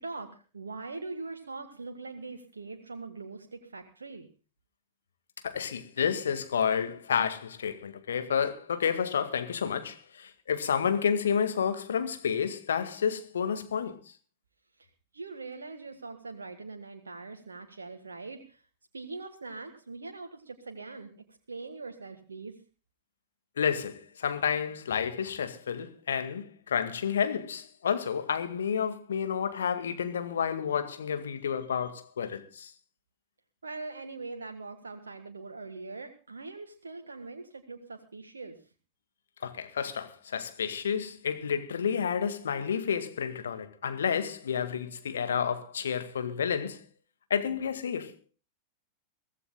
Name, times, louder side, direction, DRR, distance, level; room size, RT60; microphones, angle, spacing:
voice 1, 0.0-4.3 15.1-18.6 18.9-21.1 21.5-22.6 33.6-38.6, right 3 dB, 75° right, 1.7 m, -42 dB
voice 2, 5.4-14.0 23.6-32.7 39.4-46.8 47.3-48.1, left 7 dB, 65° left, 1.9 m, -30 dB
23.0 x 16.0 x 2.3 m
figure-of-eight pair, 90°, 0 cm